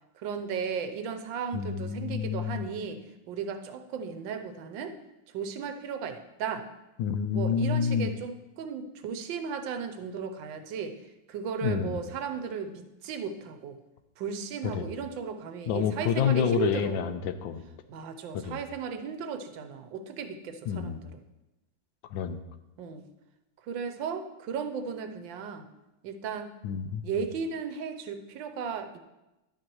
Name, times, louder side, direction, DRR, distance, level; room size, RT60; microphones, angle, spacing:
voice 1, 0.2-4.9 5.3-6.7 7.3-10.9 11.3-13.8 14.2-17.0 17.9-21.2 22.8-23.0 23.7-25.7 26.0-26.5 27.0-29.0, right 6 dB, 75° right, 8 dB, 1.4 m, -35 dB
voice 2, 1.5-2.7 7.0-8.1 11.6-12.0 14.7-14.9 15.7-17.6 18.3-18.6 20.7-21.0 22.1-22.4 26.6-27.0, left 7 dB, 80° left, 9 dB, 1.3 m, -28 dB
11.5 x 9.0 x 3.0 m, 0.98 s
omnidirectional pair, 2.1 m